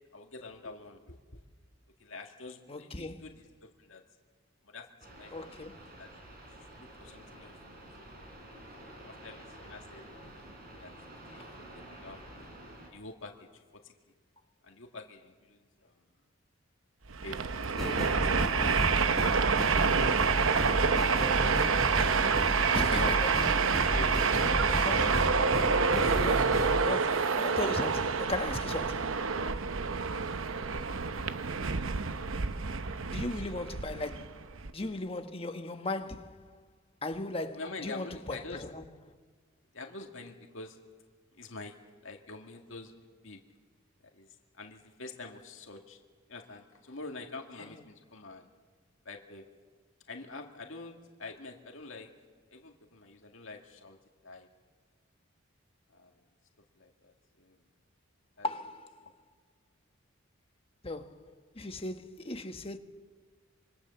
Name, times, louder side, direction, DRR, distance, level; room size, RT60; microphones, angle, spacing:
voice 1, 0.1-1.4 2.0-4.0 4.6-4.9 5.2-6.1 6.6-8.0 8.8-10.5 10.8-10.9 11.3-12.5 12.9-13.5 13.8-13.9 14.6-16.0 17.2-21.3 22.1-23.2 23.6-25.1 33.1-33.7 37.5-38.6 39.7-40.8 41.3-41.8 42.0-42.9 43.2-43.4 44.1-46.0 46.3-48.5 49.1-49.4 50.1-52.1 52.5-54.0 54.2-54.5 55.9-56.1 56.8-57.6 58.4-58.5 59.0-59.1, left 3 dB, 70° left, 2.1 m, -47 dB
voice 2, 2.7-3.3 5.3-5.8 22.7-23.3 24.8-25.0 25.9-29.3 33.1-34.5 34.7-36.6 37.0-38.8 47.6-47.7 58.4-59.1 60.8-62.8, left 2 dB, 30° left, 1.3 m, -37 dB
sound 1, 5.0-12.9, right 1 dB, 50° right, 5.0 m, -50 dB
Train, 17.1-34.7, right 5 dB, 80° right, 0.8 m, -28 dB
sound 2, 17.8-26.8, equal, ahead, 4.6 m, -32 dB
26.0 x 23.5 x 7.1 m
head